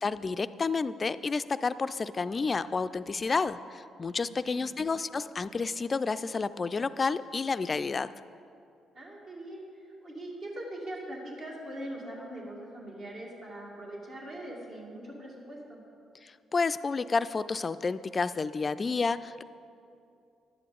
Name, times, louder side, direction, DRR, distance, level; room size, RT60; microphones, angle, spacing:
voice 1, 0.0-8.1 16.2-19.4, left 4 dB, 35° left, 14 dB, 0.3 m, -30 dB
voice 2, 4.2-4.7 8.9-9.7 10.0-15.8, right 1 dB, 60° right, -4 dB, 2.3 m, -42 dB
11.5 x 9.8 x 3.9 m, 2.6 s
figure-of-eight pair, 45°, 0 cm